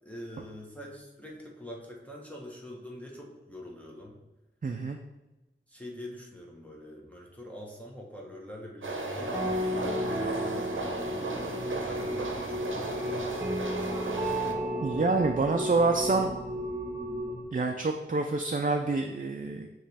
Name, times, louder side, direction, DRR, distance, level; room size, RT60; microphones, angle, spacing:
voice 1, 0.0-4.2 5.7-11.4 11.8-13.3, equal, 5° left, -3 dB, 1.1 m, -44 dB
voice 2, 4.6-5.0 14.8-16.3 17.5-19.7, right 3 dB, 45° right, 3 dB, 0.5 m, -27 dB
sound 1, 8.8-14.5, right 2 dB, 85° right, 0.7 m, -36 dB
sound 2, 9.2-17.4, equal, 15° right, 1.2 m, -33 dB
8.8 x 3.1 x 3.5 m, 1.0 s
wide cardioid pair, 55°, 20 cm